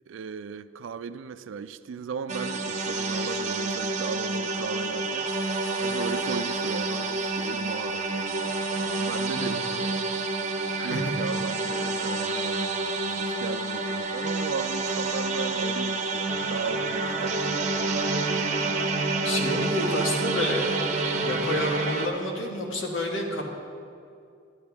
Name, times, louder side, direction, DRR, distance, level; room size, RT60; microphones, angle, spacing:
voice 1, 0.1-5.3 5.8-10.2 10.8-17.9, right 6 dB, 75° right, 0.4 m, -37 dB
sound 1, 2.3-22.1, right 3 dB, 35° right, 0.7 m, -28 dB
voice 2, 9.3-9.7 10.8-11.1 19.2-20.7 21.2-23.4, left 1 dB, 75° left, 1.6 m, -29 dB
12.0 x 10.5 x 3.5 m
head